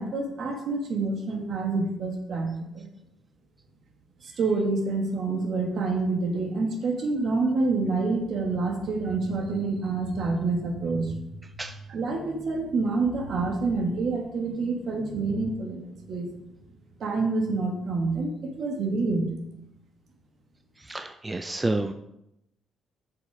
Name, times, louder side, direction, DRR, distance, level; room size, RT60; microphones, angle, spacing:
voice 1, 0.0-2.9 4.4-11.2 11.9-16.3 17.0-19.3, right 3 dB, 60° right, 2 dB, 1.7 m, -27 dB
voice 2, 20.9-21.9, right 2 dB, 20° right, 9 dB, 0.5 m, -29 dB
6.5 x 5.3 x 4.8 m, 0.83 s
hypercardioid pair, 50°, 0 cm